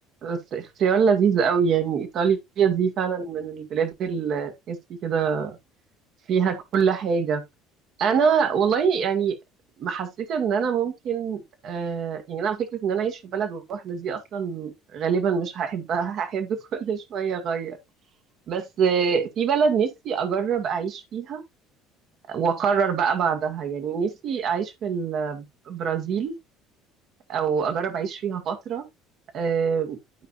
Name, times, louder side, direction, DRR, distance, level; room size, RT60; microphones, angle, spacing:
voice 1, 0.2-5.6 6.3-7.4 8.0-9.4 9.8-17.8 18.5-21.4 22.3-26.3 27.3-28.9 29.3-30.0, right 6 dB, 45° right, 1.9 m, -25 dB
12.5 x 5.3 x 2.5 m
figure-of-eight pair, 60°, 0 cm